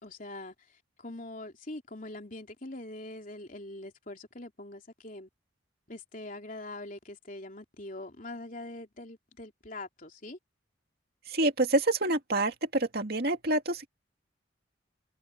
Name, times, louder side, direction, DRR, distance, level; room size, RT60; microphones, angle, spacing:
voice 1, 0.0-5.3 5.9-10.4, left 2 dB, 45° left, 3.4 m, -43 dB
voice 2, 11.3-13.9, right 2 dB, 55° right, 2.3 m, -27 dB
head